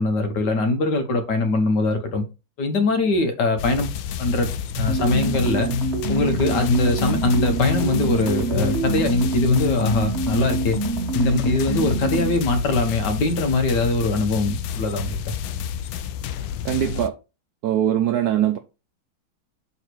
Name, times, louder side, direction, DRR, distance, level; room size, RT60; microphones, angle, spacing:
voice 1, 0.0-2.2 2.6-3.9 4.2-4.5 4.8-5.7 6.1-10.8 11.1-15.2, left 2 dB, 60° left, 1.6 m, -22 dB
sound 1, 3.6-17.1, left 9 dB, 85° left, 1.4 m, -30 dB
sound 2, 4.8-12.4, right 2 dB, 40° right, 1.2 m, -26 dB
voice 2, 16.6-17.1 17.6-18.6, right 11 dB, 75° right, 0.9 m, -21 dB
6.5 x 4.0 x 4.4 m
omnidirectional pair, 2.2 m